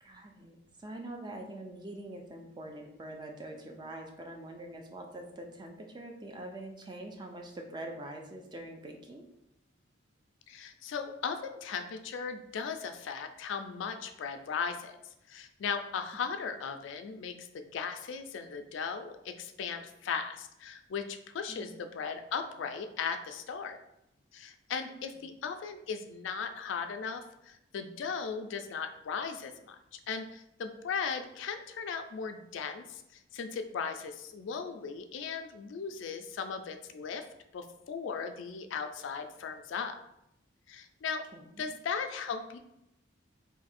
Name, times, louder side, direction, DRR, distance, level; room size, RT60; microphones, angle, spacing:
voice 1, 0.0-9.3 21.5-21.7 24.9-25.0 41.3-41.6, right 1 dB, 20° right, 2 dB, 0.4 m, -44 dB
voice 2, 10.5-15.0 15.3-23.8 24.3-29.8 30.1-37.3 37.5-40.0 40.7-41.2 41.6-42.6, left 6 dB, 70° left, 7 dB, 0.3 m, -37 dB
2.6 x 2.5 x 4.1 m, 0.84 s
head